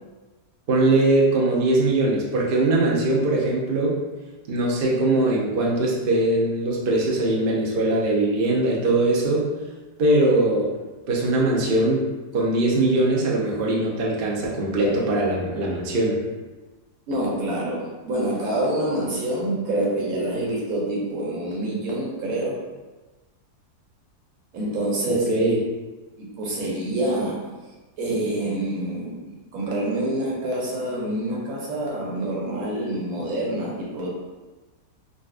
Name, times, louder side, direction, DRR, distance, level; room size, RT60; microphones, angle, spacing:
voice 1, 0.7-4.0 4.5-9.5 10.0-10.7 11.1-12.1 12.3-16.2 25.1-25.6, right 2 dB, 80° right, -3 dB, 0.5 m, -21 dB
voice 2, 17.1-22.6 24.5-25.4 26.2-27.4 28.0-29.2 29.5-34.1, right 1 dB, 65° right, -4 dB, 1.1 m, -26 dB
3.8 x 2.3 x 2.4 m, 1.2 s
omnidirectional pair, 1.8 m